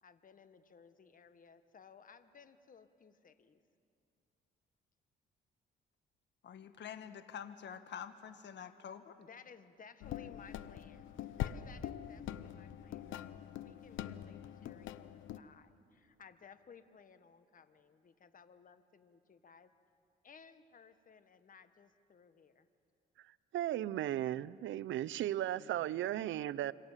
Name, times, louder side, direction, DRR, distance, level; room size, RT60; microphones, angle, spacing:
voice 1, 0.0-3.6 9.2-13.4 13.6-19.7 20.2-22.7, left 6 dB, 45° left, 11 dB, 1.5 m, -59 dB
voice 2, 6.4-9.2 25.6-25.7, left 8 dB, 65° left, 10 dB, 1.5 m, -47 dB
sound 1, 10.0-15.4, left 11 dB, 80° left, 0.9 m, -43 dB
voice 3, 23.5-26.7, right 13 dB, 75° right, 18 dB, 0.6 m, -36 dB
27.0 x 26.0 x 7.4 m, 2.6 s
cardioid pair, 90°, 20 cm